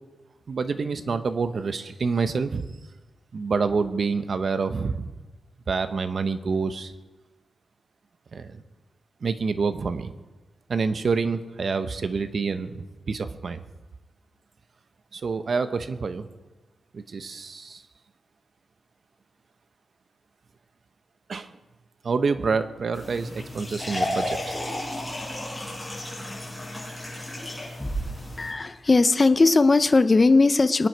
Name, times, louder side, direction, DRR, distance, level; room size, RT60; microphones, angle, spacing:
voice 1, 0.5-2.7 3.3-5.1 5.7-6.9 8.3-8.6 9.2-10.1 10.7-13.6 15.1-16.3 16.9-17.8 21.3-21.5 22.0-24.6, right 4 dB, 45° right, 11 dB, 0.8 m, -27 dB
sound 1, 22.9-28.5, left 1 dB, ahead, 5.7 m, -32 dB
voice 2, 28.4-30.9, left 3 dB, 25° left, 12 dB, 0.5 m, -18 dB
23.0 x 9.4 x 4.6 m, 1.2 s
wide cardioid pair, 160°, 0 cm